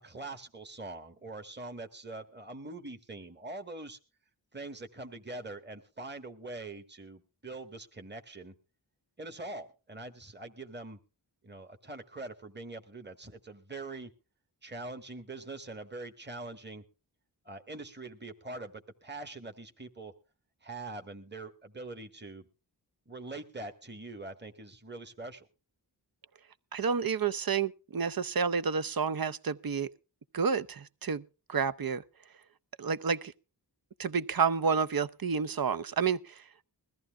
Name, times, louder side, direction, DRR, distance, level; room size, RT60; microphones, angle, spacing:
voice 1, 0.0-4.0 4.5-8.5 9.2-11.0 11.4-14.1 14.6-16.8 17.4-20.1 20.6-22.5 23.1-25.5, right 2 dB, 25° right, 1.6 m, -43 dB
voice 2, 26.7-29.9 30.3-31.2 31.5-32.0 32.8-33.3 34.0-36.4, right 6 dB, 50° right, 0.7 m, -30 dB
21.5 x 14.0 x 2.4 m
wide cardioid pair, 50°, 44 cm